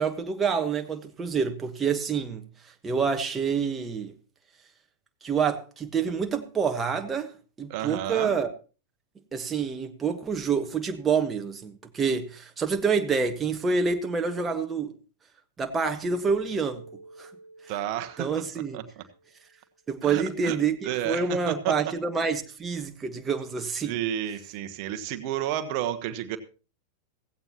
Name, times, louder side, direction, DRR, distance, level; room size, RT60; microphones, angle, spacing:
voice 1, 0.0-2.4 2.8-4.1 5.2-8.5 9.3-14.9 15.6-16.8 17.2-17.3 18.2-18.8 19.9-24.0, right 5 dB, 15° right, 1.3 m, -27 dB
voice 2, 7.7-8.4 17.7-18.3 18.7-19.0 20.0-20.6 20.8-21.7 23.8-26.4, right 11 dB, 45° right, 1.2 m, -31 dB
Keyboard (musical), 16.2-19.4, right 3 dB, 80° left, 4.7 m, -49 dB
16.0 x 16.0 x 2.9 m
figure-of-eight pair, 90°, 0 cm